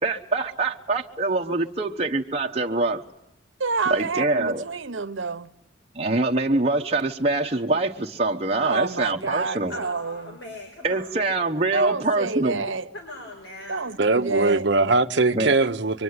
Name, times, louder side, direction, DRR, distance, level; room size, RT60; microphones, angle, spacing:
voice 1, 0.0-3.0 3.9-4.6 5.9-9.7 10.8-12.6 15.3-15.6, right 2 dB, 30° right, 1.1 m, -24 dB
voice 2, 3.6-5.5 8.6-10.4 11.7-12.9 13.7-14.6, right 4 dB, 85° right, 1.1 m, -28 dB
voice 3, 9.7-11.3 12.9-13.9, left 2 dB, 75° left, 5.2 m, -40 dB
voice 4, 14.0-16.0, right 3 dB, 60° right, 0.9 m, -21 dB
25.0 x 24.0 x 9.6 m
head